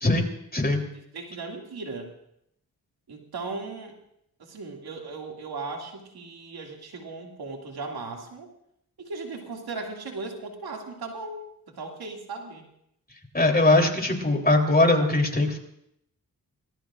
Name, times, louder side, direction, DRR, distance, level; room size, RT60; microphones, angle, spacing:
voice 1, 0.0-0.8 13.3-15.6, left 2 dB, 25° left, 2 dB, 3.4 m, -21 dB
voice 2, 0.9-2.1 3.1-4.0 4.4-8.5 9.0-12.6, right 3 dB, 85° right, 1 dB, 2.4 m, -37 dB
26.5 x 19.5 x 2.5 m, 0.75 s
cardioid pair, 55°, 37 cm